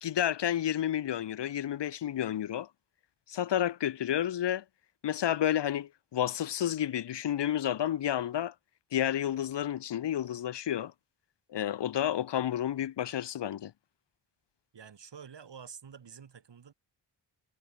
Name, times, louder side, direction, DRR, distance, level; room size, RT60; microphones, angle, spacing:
voice 1, 0.0-2.7 3.3-4.6 5.0-8.5 8.9-10.9 11.5-13.7, left 11 dB, 75° left, 0.9 m, -30 dB
voice 2, 14.7-16.7, right 7 dB, 75° right, 6.4 m, -49 dB
wide cardioid pair, 100°, 43 cm